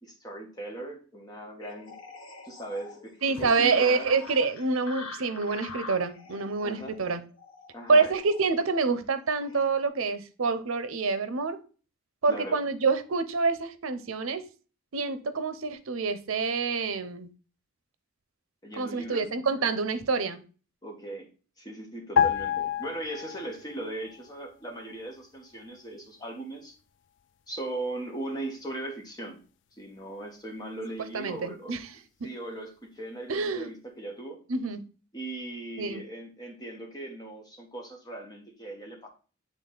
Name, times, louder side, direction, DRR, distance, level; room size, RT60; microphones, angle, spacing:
voice 1, 0.0-1.9 2.4-4.1 6.6-6.9 7.7-8.1 12.3-12.6 18.6-19.2 20.8-21.3 21.6-26.8 27.5-29.4 29.8-31.7 32.2-34.4 35.1-39.1, right 2 dB, 20° left, 1.4 m, -38 dB
sound 1, 1.6-9.8, left 3 dB, 90° left, 1.2 m, -46 dB
voice 2, 3.2-7.2 7.9-11.6 12.2-14.4 14.9-17.3 18.8-20.4 31.1-31.9 33.3-33.7 34.5-34.8 35.8-36.0, right 4 dB, 85° right, 0.7 m, -27 dB
sound 2, 22.2-23.8 24.1-24.3, left 8 dB, 60° left, 0.3 m, -27 dB
8.4 x 3.5 x 3.9 m
head